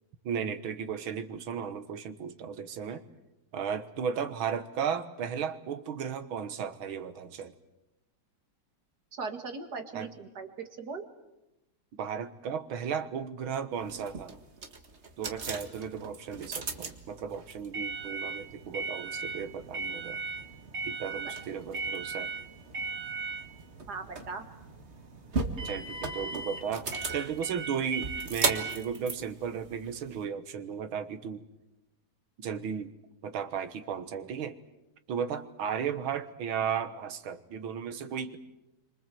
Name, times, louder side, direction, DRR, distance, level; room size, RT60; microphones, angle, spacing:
voice 1, 0.2-3.0 3.5-7.5 9.9-10.1 12.0-14.4 15.2-20.2 20.8-22.3 25.6-31.4 32.4-32.9 33.2-34.6 35.1-38.4, right 7 dB, 85° right, 9 dB, 2.1 m, -35 dB
voice 2, 9.2-11.1 23.9-24.5, right 4 dB, 55° right, 6 dB, 2.7 m, -39 dB
sound 1, 13.8-30.2, right 3 dB, 35° right, 1.9 m, -36 dB
28.0 x 25.5 x 7.7 m, 0.96 s
omnidirectional pair, 2.2 m